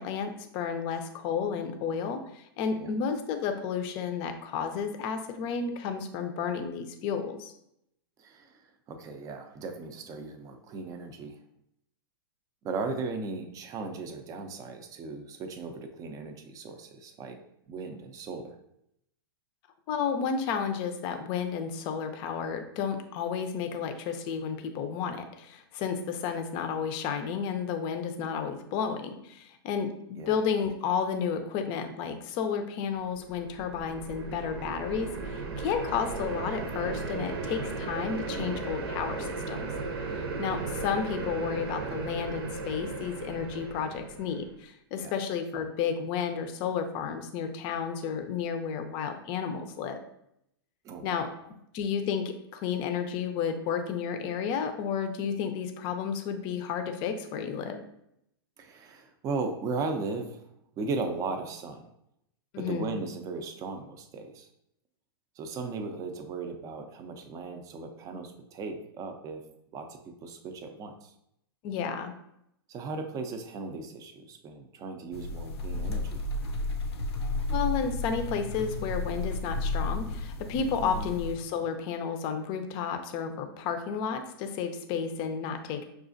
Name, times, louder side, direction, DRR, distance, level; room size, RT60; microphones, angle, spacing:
voice 1, 0.0-7.5 19.9-39.7 40.4-50.0 51.0-57.8 62.5-62.9 71.6-72.1 77.5-85.8, left 6 dB, 40° left, 7 dB, 0.5 m, -32 dB
voice 2, 8.2-8.6 8.9-11.4 12.6-17.4 17.7-18.6 30.2-30.4 38.3-38.7 45.0-45.1 50.8-51.2 58.6-60.4 60.8-61.9 62.6-64.5 65.4-69.5 69.7-71.1 72.7-76.2 80.8-81.1, right 4 dB, 25° right, 5 dB, 0.5 m, -37 dB
sound 1, 33.1-44.5, right 3 dB, 80° right, 0.8 m, -36 dB
sound 2, 75.1-81.4, left 2 dB, 85° left, 0.6 m, -32 dB
5.9 x 2.4 x 2.5 m, 0.77 s
hypercardioid pair, 125°, 13 cm